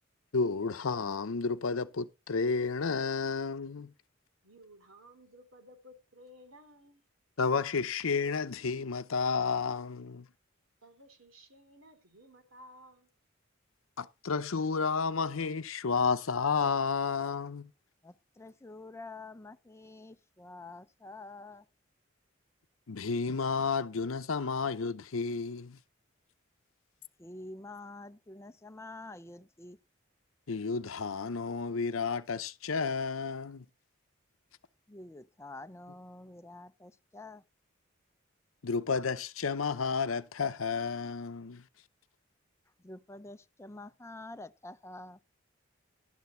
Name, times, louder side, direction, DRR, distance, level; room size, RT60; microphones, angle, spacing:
voice 1, 0.3-3.9 7.4-10.3 14.0-17.7 22.9-25.8 30.5-33.6 38.6-41.6, left 5 dB, 85° left, 0.7 m, -31 dB
voice 2, 4.4-7.0 10.8-13.1, equal, 85° right, 3.0 m, -56 dB
voice 3, 18.0-21.7 27.2-29.8 34.9-37.4 42.8-45.2, left 2 dB, 15° left, 0.5 m, -47 dB
12.0 x 4.3 x 8.0 m
head